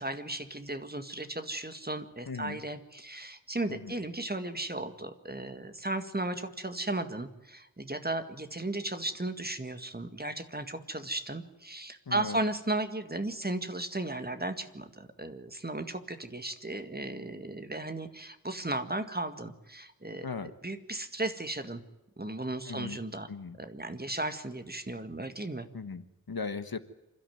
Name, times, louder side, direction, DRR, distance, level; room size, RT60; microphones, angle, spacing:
voice 1, 0.0-20.3 20.6-21.8 22.2-23.3 23.6-25.7, right 2 dB, 25° right, 9 dB, 2.0 m, -35 dB
voice 2, 2.3-2.6 3.7-3.9 12.1-12.4 20.2-20.5 22.7-23.0 23.3-23.6 25.7-26.8, left 4 dB, 75° left, 11 dB, 1.5 m, -38 dB
27.0 x 13.0 x 9.5 m, 0.97 s
wide cardioid pair, 55°, 36 cm